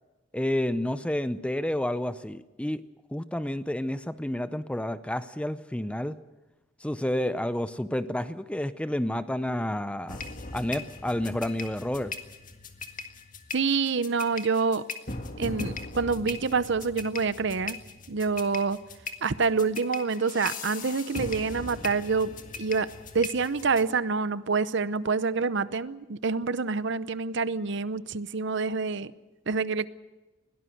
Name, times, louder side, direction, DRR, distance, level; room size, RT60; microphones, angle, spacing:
voice 1, 0.3-2.8 3.1-6.2 6.8-10.2 10.5-12.1, left 1 dB, 5° left, 13 dB, 0.6 m, -30 dB
sound 1, 10.1-23.9, left 3 dB, 40° left, 1.8 m, -39 dB
voice 2, 13.5-14.8 15.4-17.8 18.1-18.8 19.2-22.3 22.6-22.9 23.1-29.1 29.5-29.9, right 4 dB, 60° right, 15 dB, 0.7 m, -27 dB
21.5 x 17.5 x 7.8 m, 1.1 s
head